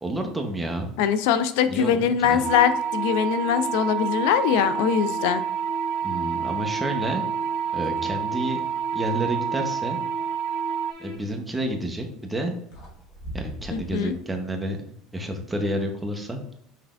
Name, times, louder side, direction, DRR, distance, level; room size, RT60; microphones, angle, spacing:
voice 1, 0.0-0.9 1.7-2.4 6.0-7.2 7.7-8.6 8.9-10.0 11.0-12.5 13.3-14.9 15.1-16.6, right 1 dB, 10° right, 3 dB, 0.8 m, -30 dB
voice 2, 1.0-5.4 13.7-14.1, left 8 dB, 80° left, 11 dB, 0.3 m, -22 dB
sound 1, 2.4-10.9, right 9 dB, 40° right, 0.3 m, -28 dB
sound 2, 2.4-11.2, left 2 dB, 65° right, 1.5 m, -38 dB
sound 3, 5.8-6.0 6.3-7.0 7.4-9.3 11.5-11.8 12.4-12.5 12.7-14.2, equal, 55° left, 1.4 m, -42 dB
5.7 x 3.3 x 2.4 m, 0.70 s
supercardioid pair, 125°, 0 cm